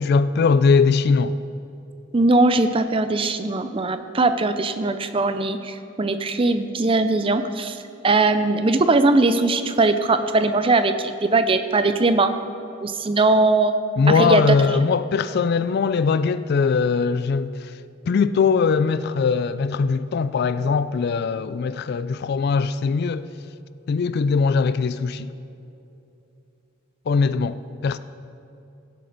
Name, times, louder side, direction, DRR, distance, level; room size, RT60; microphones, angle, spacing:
voice 1, 0.0-1.4 14.0-17.7 18.1-23.2 23.9-25.3 27.1-28.0, left 5 dB, 50° left, 0.3 m, -21 dB
voice 2, 2.1-12.3 12.8-13.7 14.1-14.6, right 3 dB, 25° right, 0.4 m, -20 dB
16.5 x 7.6 x 4.0 m
head